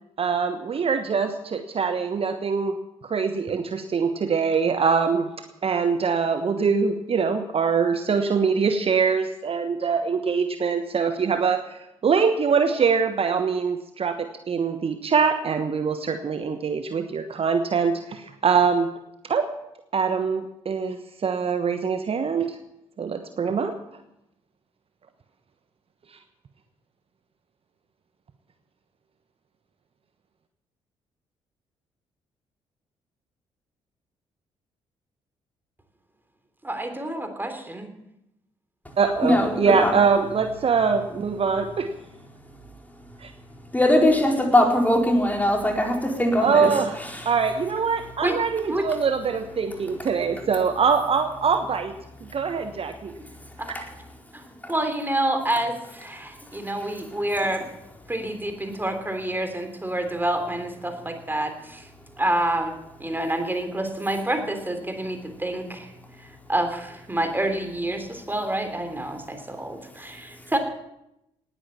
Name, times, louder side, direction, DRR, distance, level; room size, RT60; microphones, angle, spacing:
voice 1, 0.2-2.7 3.0-5.3 5.6-18.9 19.2-19.5 19.9-22.6 23.0-23.7 26.1-26.2 39.0-41.9 43.2-43.3 46.4-47.0 47.2-51.9 52.3-53.1 53.7-53.8, right 5 dB, 40° right, 8 dB, 1.2 m, -23 dB
voice 2, 36.6-37.9 48.2-48.4 48.7-48.9 53.6-53.7 54.3-57.6 58.1-61.9 62.2-65.9 66.2-70.6, right 1 dB, 15° right, 7 dB, 3.4 m, -28 dB
voice 3, 39.2-39.9 43.7-46.7 47.1-47.3 53.6-53.8 54.6-54.7, left 1 dB, 10° left, 1 dB, 4.6 m, -21 dB
19.0 x 9.8 x 7.3 m, 0.85 s
figure-of-eight pair, 40°, 15 cm